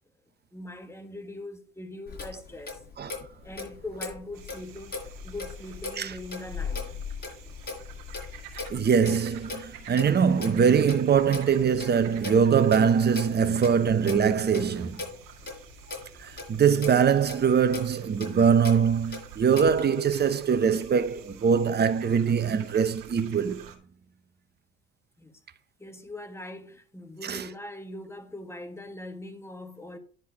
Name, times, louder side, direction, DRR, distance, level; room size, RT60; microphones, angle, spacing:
voice 1, 0.5-2.8 3.4-6.9 13.3-13.7 15.4-15.6 25.2-25.4 25.8-30.0, left 1 dB, 5° left, 1.5 m, -41 dB
Clock, 2.1-19.8, left 4 dB, 25° left, 4.8 m, -39 dB
sound 1, 4.3-23.8, right 9 dB, 65° right, 1.9 m, -49 dB
voice 2, 8.7-15.0 16.2-23.7 27.2-27.4, right 7 dB, 30° right, 0.8 m, -23 dB
10.5 x 4.6 x 4.6 m
supercardioid pair, 85°, 35 cm